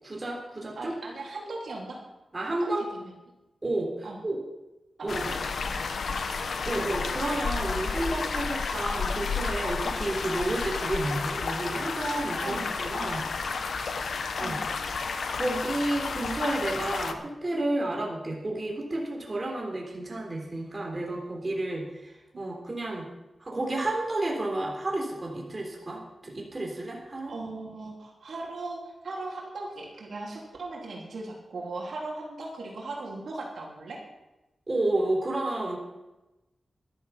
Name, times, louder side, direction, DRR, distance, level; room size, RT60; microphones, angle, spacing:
voice 1, 0.0-1.0 2.3-2.9 3.6-4.4 5.0-5.3 6.6-13.3 14.4-14.6 15.0-23.1 23.4-27.3 34.7-35.8, right 2 dB, 30° right, -1 dB, 3.7 m, -31 dB
voice 2, 0.8-2.0 2.4-3.1 4.0-4.2 5.0-6.3 12.4-12.7 14.4-14.6 27.3-34.0, right 2 dB, 75° right, -2 dB, 3.5 m, -38 dB
sound 1, 5.1-17.1, left 4 dB, 80° left, 1.1 m, -31 dB
13.0 x 12.0 x 5.8 m, 1.0 s
wide cardioid pair, 95°, 0 cm